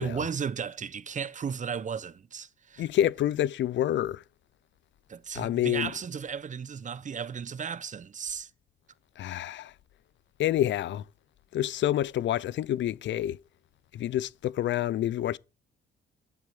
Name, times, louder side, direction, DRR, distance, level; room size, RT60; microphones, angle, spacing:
voice 1, 0.0-2.9 5.1-8.5, right 6 dB, 40° right, 0.9 m, -35 dB
voice 2, 2.8-4.2 5.3-5.9 9.2-9.7 10.4-11.0 11.5-13.4 13.9-15.4, left 12 dB, 65° left, 0.6 m, -28 dB
11.0 x 7.6 x 9.1 m
cardioid pair, 90°, 20 cm